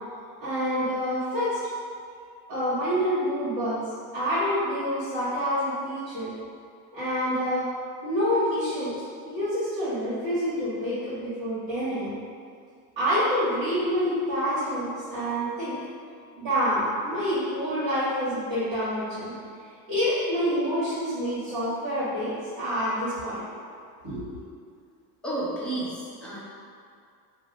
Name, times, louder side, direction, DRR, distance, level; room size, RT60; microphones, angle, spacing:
voice 1, 0.4-1.6 2.5-3.8 4.1-6.3 6.9-7.7 8.0-12.2 13.0-15.7 16.4-19.3 19.9-22.3 22.6-23.4 24.0-24.2, equal, 55° right, -13 dB, 1.4 m, -27 dB
voice 2, 25.2-26.4, right 2 dB, ahead, -9 dB, 0.8 m, -31 dB
2.7 x 2.2 x 3.9 m, 2.3 s
cardioid pair, 120°, 44 cm